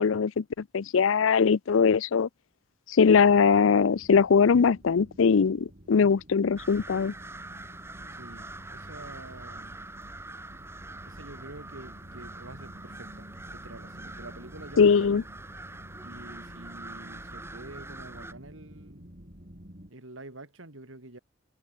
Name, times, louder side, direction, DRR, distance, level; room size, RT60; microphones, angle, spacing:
voice 1, 0.0-2.3 2.9-7.1 14.8-15.2, left 6 dB, 80° left, 0.5 m, -21 dB
sound 1, 3.0-19.9, equal, 45° right, 7.1 m, -50 dB
sound 2, 6.6-18.3, right 2 dB, 15° right, 1.0 m, -44 dB
voice 2, 8.1-9.8 11.0-15.2 16.0-19.1 19.9-21.2, right 2 dB, 80° right, 3.3 m, -47 dB
head